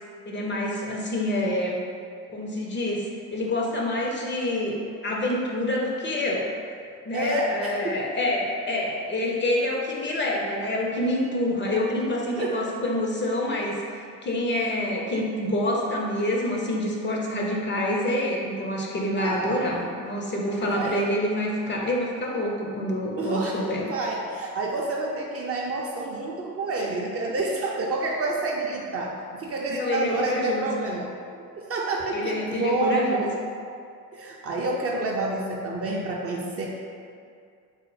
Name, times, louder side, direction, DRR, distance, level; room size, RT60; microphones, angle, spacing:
voice 1, 0.3-1.8 2.3-6.5 7.1-23.8 29.7-30.7 32.1-33.3, left 1 dB, 25° left, -2 dB, 0.4 m, -27 dB
voice 2, 7.1-8.1 12.4-12.6 14.8-14.9 19.2-19.9 20.5-21.1 23.2-33.3 34.1-36.7, right 2 dB, 30° right, -2 dB, 0.4 m, -29 dB
4.0 x 2.0 x 3.1 m, 2.3 s
figure-of-eight pair, 50°, 47 cm